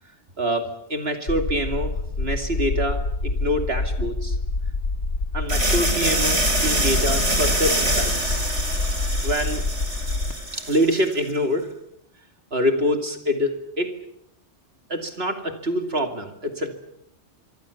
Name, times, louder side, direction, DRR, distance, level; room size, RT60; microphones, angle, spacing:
voice 1, 0.4-4.4 5.3-8.5 9.2-9.6 10.5-11.7 12.5-14.0 14.9-16.7, equal, 60° right, 5 dB, 2.7 m, -25 dB
sound 1, 1.3-10.3, left 3 dB, 80° left, 2.3 m, -26 dB
sound 2, 5.5-11.2, right 1 dB, 80° right, 5.3 m, -25 dB
25.0 x 24.5 x 7.1 m, 0.77 s
omnidirectional pair, 1.2 m